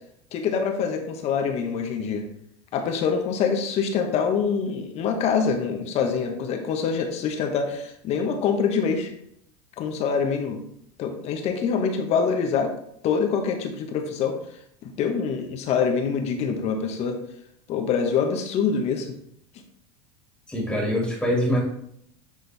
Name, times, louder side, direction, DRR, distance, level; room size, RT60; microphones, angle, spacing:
voice 1, 0.3-2.2 2.7-9.1 9.8-10.6 11.0-12.7 13.0-14.4 15.0-17.2 17.7-19.1, left 6 dB, 50° left, 5 dB, 1.2 m, -25 dB
voice 2, 20.5-21.6, equal, 5° left, -3 dB, 2.1 m, -24 dB
8.3 x 3.8 x 3.4 m, 0.72 s
supercardioid pair, 105°, 14 cm